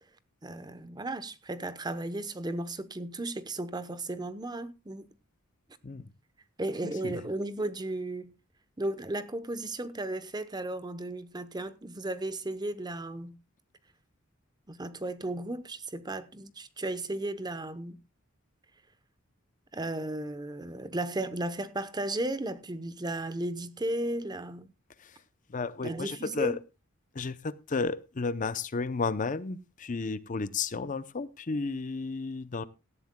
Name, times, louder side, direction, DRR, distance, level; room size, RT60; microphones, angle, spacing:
voice 1, 0.4-5.1 6.6-8.3 8.8-13.3 14.7-18.0 19.7-24.7 25.8-26.6, right 1 dB, 20° right, 0.8 m, -35 dB
voice 2, 6.8-7.2 25.0-25.2 25.5-26.6 27.1-32.6, left 4 dB, 40° left, 0.6 m, -33 dB
18.0 x 13.0 x 2.2 m
head